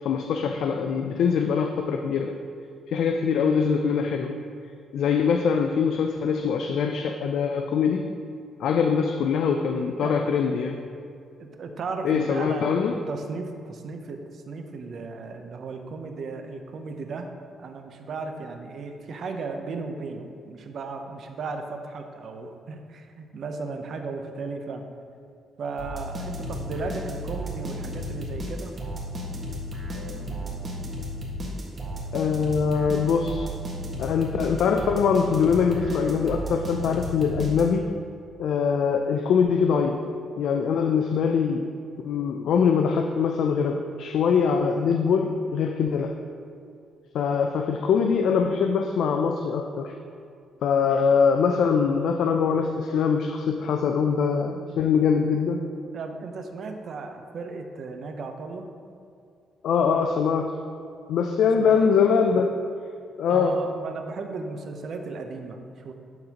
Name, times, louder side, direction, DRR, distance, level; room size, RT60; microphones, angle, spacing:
voice 1, 0.0-2.3 2.9-4.4 4.9-8.0 8.6-10.8 12.0-13.0 32.1-33.5 34.0-37.8 38.4-40.0 40.4-41.7 42.0-46.1 47.1-49.9 50.6-55.7 59.6-60.5 61.1-62.5 63.2-63.6, left 6 dB, 75° left, 5 dB, 0.3 m, -23 dB
voice 2, 11.4-17.3 17.6-24.8 25.6-28.7 55.9-58.7 61.6-61.9 63.3-65.9, right 4 dB, 60° right, 5 dB, 0.7 m, -35 dB
sound 1, 25.8-38.0, equal, 40° right, 1.5 m, -34 dB
11.5 x 3.9 x 2.9 m, 2.5 s
cardioid pair, 90°, 0 cm